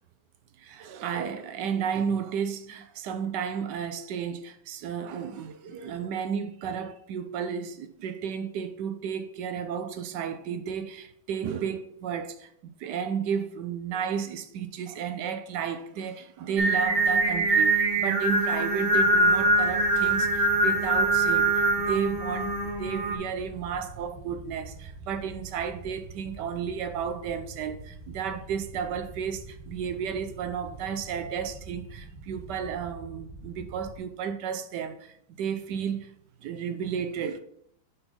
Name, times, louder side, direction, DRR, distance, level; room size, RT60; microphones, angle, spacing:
voice 1, 0.6-36.1 36.4-37.4, right 7 dB, 70° right, 1.1 m, -33 dB
Singing, 16.6-23.2, right 2 dB, 45° right, 0.8 m, -23 dB
sound 1, 18.9-34.0, right 3 dB, 5° right, 1.0 m, -45 dB
5.6 x 4.4 x 5.2 m
omnidirectional pair, 2.2 m